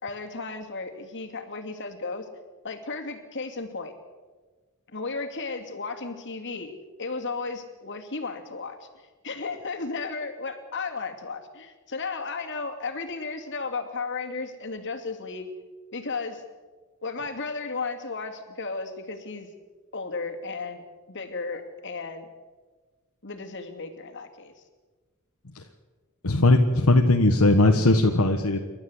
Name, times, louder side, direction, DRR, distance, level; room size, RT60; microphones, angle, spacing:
voice 1, 0.0-2.3 2.6-3.9 4.9-6.7 7.0-15.5 15.9-16.4 17.0-19.5 19.9-20.8 21.1-22.3 23.2-24.6, left 4 dB, 55° left, 5 dB, 2.5 m, -34 dB
voice 2, 26.2-28.6, left 2 dB, 75° left, 3 dB, 1.4 m, -19 dB
28.5 x 12.5 x 8.0 m, 1.4 s
head